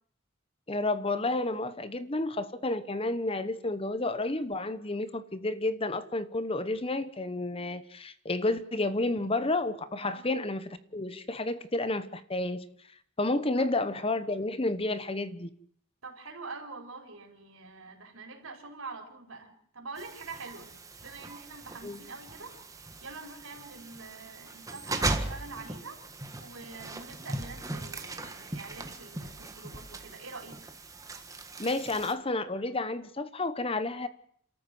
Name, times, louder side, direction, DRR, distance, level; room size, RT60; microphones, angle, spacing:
voice 1, 0.7-12.6 13.2-15.5 21.8-22.0 31.6-34.1, left 2 dB, 25° left, 1.0 m, -31 dB
voice 2, 16.0-20.7 21.0-26.0 26.4-30.6, right 3 dB, 80° right, 4.8 m, -45 dB
sound 1, 20.0-32.1, right 2 dB, 15° right, 1.6 m, -38 dB
29.5 x 13.5 x 7.7 m
head